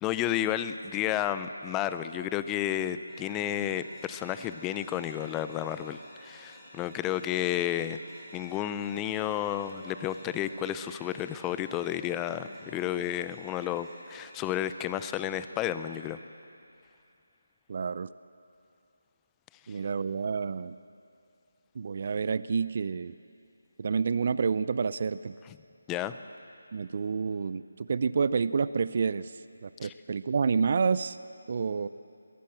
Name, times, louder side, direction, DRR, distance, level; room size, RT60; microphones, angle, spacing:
voice 1, 0.0-8.0 8.3-16.2 25.9-26.2 29.8-29.9, left 11 dB, 10° left, 12 dB, 0.5 m, -31 dB
sound 1, 3.1-14.7, equal, 5° right, 4.7 m, -51 dB
voice 2, 17.7-18.1 19.7-20.8 21.8-23.1 23.8-25.3 26.7-29.3 29.6-31.2 31.5-31.9, right 5 dB, 45° right, 16 dB, 0.5 m, -29 dB
22.0 x 16.0 x 7.7 m, 2.5 s
figure-of-eight pair, 160°, 0 cm